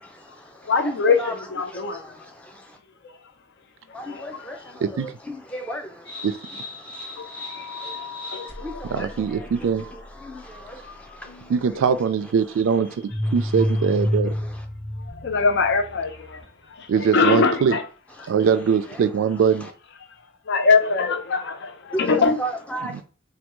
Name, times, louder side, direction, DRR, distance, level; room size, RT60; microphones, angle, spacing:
voice 1, 0.6-2.1 3.0-3.1 3.9-4.6 7.1-7.7 8.0-8.7 8.9-9.1 10.3-10.4 13.5-13.6 15.0-17.9 18.2-18.3 20.5-22.4, left 4 dB, 60° left, 0.5 m, -23 dB
voice 2, 5.0-5.8 22.1-23.0, right 1 dB, 5° left, 0.5 m, -31 dB
sound 1, 6.1-16.7, left 1 dB, 30° left, 1.2 m, -32 dB
voice 3, 8.9-9.8 11.5-14.3 16.9-17.8 18.3-19.7 22.9-23.0, right 6 dB, 85° right, 0.3 m, -22 dB
3.3 x 2.2 x 3.0 m
head